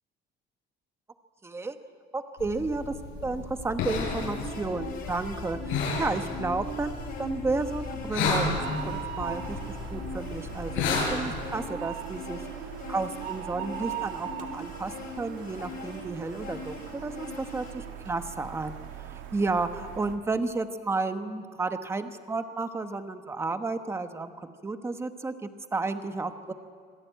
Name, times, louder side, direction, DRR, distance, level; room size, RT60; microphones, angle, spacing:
voice 1, 1.4-1.8 2.1-9.6 9.9-12.4 12.9-18.8 19.3-26.5, right 3 dB, 15° right, 8 dB, 1.1 m, -32 dB
sound 1, 2.4-11.4, left 4 dB, 80° left, 8.0 m, -33 dB
sound 2, 4.1-17.7, left 2 dB, 50° left, 6.3 m, -41 dB
sound 3, 8.4-20.2, right 11 dB, 80° right, 2.4 m, -40 dB
26.5 x 18.5 x 9.2 m, 2.1 s
cardioid pair, 180°, 20 cm